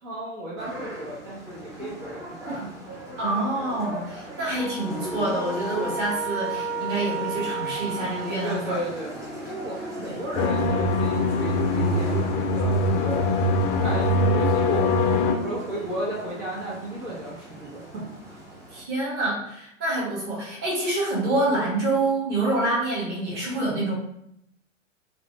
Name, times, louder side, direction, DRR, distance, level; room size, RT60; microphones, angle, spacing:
voice 1, 0.0-2.7 8.4-9.1 9.5-13.4 13.8-18.4, right 1 dB, 70° right, -6 dB, 1.4 m, -34 dB
sound 1, 0.6-18.8, equal, 10° right, 0.6 m, -39 dB
voice 2, 3.2-8.8 10.0-10.2 18.7-23.9, right 2 dB, 25° right, -6 dB, 1.2 m, -27 dB
sound 2, 4.5-9.0, right 4 dB, 50° right, 1.4 m, -33 dB
sound 3, 10.4-15.3, left 2 dB, 45° left, 0.4 m, -22 dB
3.2 x 2.6 x 2.5 m, 0.77 s
hypercardioid pair, 105°, 39 cm